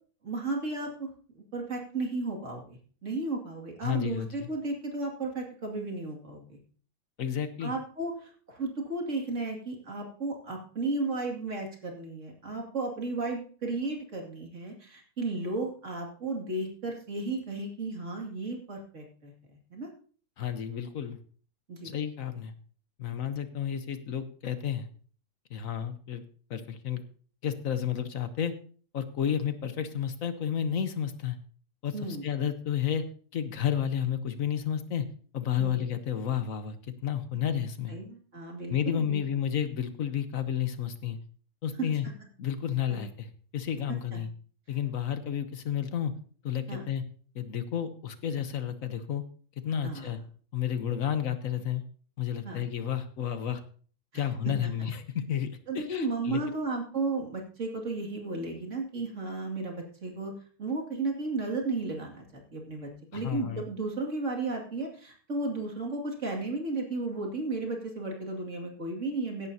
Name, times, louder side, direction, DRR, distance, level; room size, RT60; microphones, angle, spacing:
voice 1, 0.2-1.1 1.5-6.6 7.6-19.3 19.7-19.9 21.7-21.9 31.9-32.3 35.6-35.8 37.9-39.2 41.8-41.9 42.9-43.0 44.1-44.2 46.7-46.9 49.8-50.1 52.4-52.6 54.1-54.7 55.7-60.3 60.6-69.5, right 3 dB, 55° right, 0 dB, 2.8 m, -34 dB
voice 2, 3.8-4.5 7.2-7.7 20.4-21.2 21.8-22.5 23.0-24.9 25.5-26.2 26.5-27.0 27.4-28.5 28.9-31.4 31.8-31.9 32.2-33.0 33.3-35.0 35.3-36.8 37.0-37.9 38.7-41.2 41.6-42.1 42.4-43.3 43.5-44.3 44.7-46.1 46.4-47.0 47.3-49.2 49.6-50.2 50.5-51.8 52.2-53.6 54.1-56.4 63.1-63.6, left 9 dB, 70° left, 10 dB, 1.4 m, -31 dB
16.0 x 11.0 x 2.8 m, 0.43 s
omnidirectional pair, 1.5 m